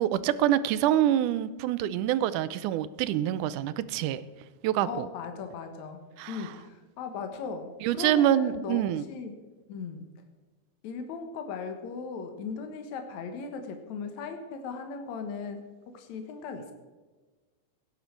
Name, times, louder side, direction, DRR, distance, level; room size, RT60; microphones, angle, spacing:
voice 1, 0.0-4.2 4.6-5.1 6.2-6.5 7.8-9.1, right 12 dB, 85° right, 15 dB, 2.1 m, -26 dB
voice 2, 4.9-6.0 6.3-9.3 9.7-10.1 10.8-15.6 15.9-16.7, left 5 dB, 70° left, 5 dB, 2.6 m, -38 dB
17.0 x 11.0 x 4.6 m, 1.3 s
omnidirectional pair, 3.5 m